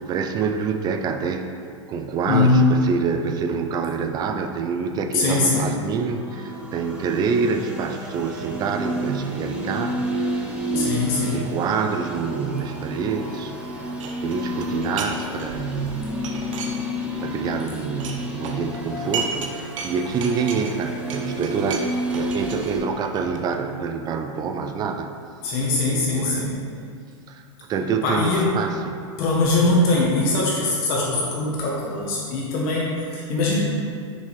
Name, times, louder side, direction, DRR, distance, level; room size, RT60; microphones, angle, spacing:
voice 1, 0.0-1.5 1.9-13.5 13.8-13.9 14.2-16.2 17.2-25.1 25.9-26.8 27.3-29.0, right 5 dB, 25° right, 6 dB, 0.4 m, -27 dB
voice 2, 2.3-2.8 5.1-5.7 10.7-11.4 25.4-26.5 28.0-28.5 29.2-33.6, left 2 dB, 50° left, -4 dB, 1.2 m, -21 dB
sound 1, 5.9-22.8, equal, 5° right, 0.8 m, -31 dB
sound 2, 14.0-15.1 15.4-17.2 17.5-19.5 19.8-23.5, right 5 dB, 75° right, 0.9 m, -34 dB
6.6 x 5.2 x 3.4 m, 2.2 s
hypercardioid pair, 135°, 16 cm